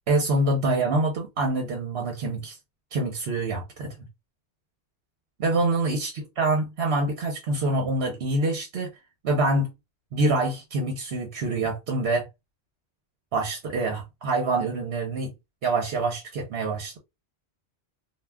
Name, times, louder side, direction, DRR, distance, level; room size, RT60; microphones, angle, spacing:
voice 1, 0.1-2.6 2.9-3.9 5.4-8.9 9.2-9.7 10.1-12.3 13.3-15.3 15.6-17.0, right 2 dB, 70° right, 1.0 m, -26 dB
2.4 x 2.3 x 3.3 m
omnidirectional pair, 1.1 m